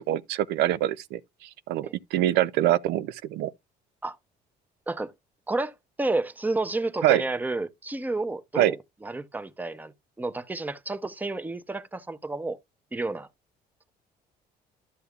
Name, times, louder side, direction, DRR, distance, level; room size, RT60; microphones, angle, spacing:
voice 1, 0.0-3.5 7.0-7.2 8.6-8.7, right 13 dB, 90° right, 0.5 m, -25 dB
voice 2, 5.5-8.8 9.0-9.9 10.2-12.6 12.9-13.3, right 2 dB, 10° right, 0.7 m, -30 dB
12.5 x 7.0 x 2.4 m
cardioid pair, 110°, 17 cm